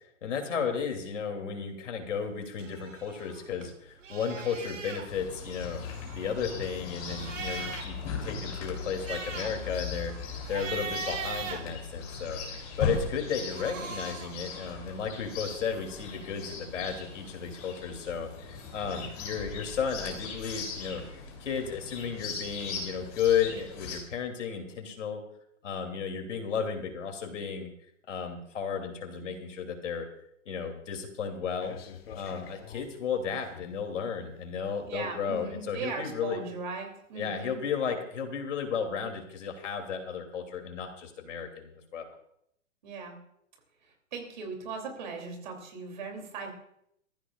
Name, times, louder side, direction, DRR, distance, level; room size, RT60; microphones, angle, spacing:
voice 1, 0.2-5.8 6.1-12.4 12.8-21.0 21.4-25.2 25.6-27.7 28.1-30.1 30.4-31.8 32.1-36.4 37.1-42.1, left 6 dB, 75° left, 4 dB, 3.0 m, -33 dB
sound 1, 2.6-3.7 4.0-5.1 5.9-8.0 8.4-8.5 8.8-12.4 13.3-14.4, right 5 dB, 85° right, 2.7 m, -40 dB
Chirp tweet, 5.1-24.0, left 5 dB, 30° left, 3.4 m, -39 dB
sound 2, 31.6-33.9 34.6-34.7, left 7 dB, 50° left, 1.3 m, -47 dB
voice 2, 34.9-37.6 42.8-43.2 44.1-46.5, right 4 dB, 40° right, 2 dB, 3.0 m, -38 dB
22.0 x 14.5 x 2.5 m, 0.74 s
hypercardioid pair, 180°, 37 cm